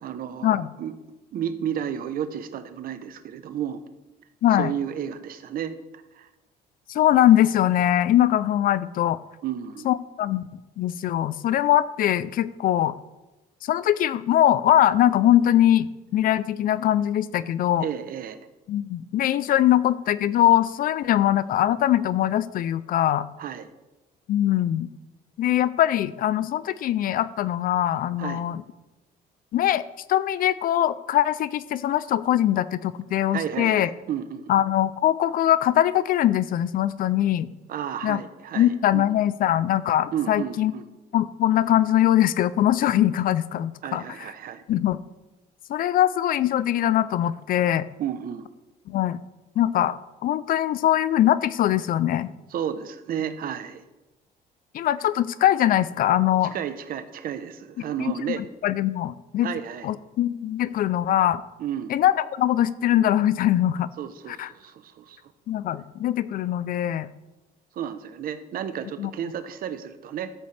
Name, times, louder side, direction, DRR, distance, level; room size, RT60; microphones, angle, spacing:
voice 1, 0.0-0.9 1.3-3.8 4.6-5.7 6.1-6.3 9.4-9.9 17.8-18.4 23.4-23.7 28.2-28.4 33.3-34.5 37.7-39.1 40.1-40.8 43.8-44.6 48.0-48.5 52.5-53.8 56.4-58.4 59.4-59.9 61.6-61.9 64.0-65.2 67.7-70.3, right 9 dB, 60° right, 11 dB, 0.9 m, -32 dB
voice 2, 6.9-9.2 9.8-10.4 10.8-13.0 13.6-17.9 18.7-23.3 24.3-24.9 25.4-28.6 29.5-29.8 30.1-33.9 34.5-37.5 38.0-38.2 38.6-40.7 41.1-44.0 44.7-45.0 45.7-47.9 48.9-49.2 49.6-52.3 54.7-56.5 58.0-59.5 59.8-61.4 61.9-63.9 64.3-64.5 65.5-67.1 69.0-69.1, left 12 dB, 60° left, 17 dB, 0.5 m, -22 dB
13.5 x 8.3 x 3.4 m, 1.0 s
cardioid pair, 110°, 17 cm